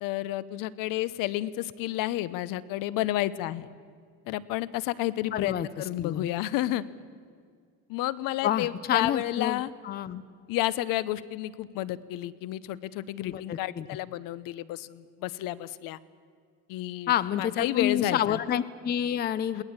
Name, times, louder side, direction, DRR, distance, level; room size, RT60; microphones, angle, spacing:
voice 1, 0.0-3.7 4.3-6.8 7.9-9.7 10.5-16.0 16.7-18.4 19.5-19.6, left 15 dB, 65° left, 18 dB, 0.9 m, -31 dB
voice 2, 5.3-5.7 6.0-6.3 8.4-10.2 13.3-13.9 17.1-19.6, left 10 dB, 25° left, 17 dB, 0.6 m, -28 dB
22.0 x 18.0 x 8.9 m, 2.1 s
cardioid pair, 140°, 36 cm